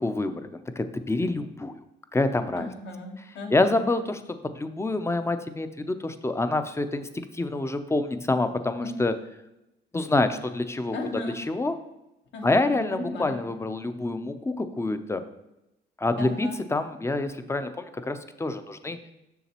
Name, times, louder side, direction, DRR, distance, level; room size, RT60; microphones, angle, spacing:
voice 1, 0.0-1.8 2.1-2.7 3.5-9.2 9.9-11.0 11.4-11.8 12.4-15.2 16.0-19.0, left 2 dB, 15° left, 10 dB, 0.5 m, -27 dB
voice 2, 2.6-3.8 8.8-9.0 10.9-11.4 12.3-13.4 16.2-16.6, left 2 dB, 65° left, 3 dB, 1.2 m, -36 dB
7.1 x 6.4 x 2.9 m, 0.90 s
cardioid pair, 90°, 20 cm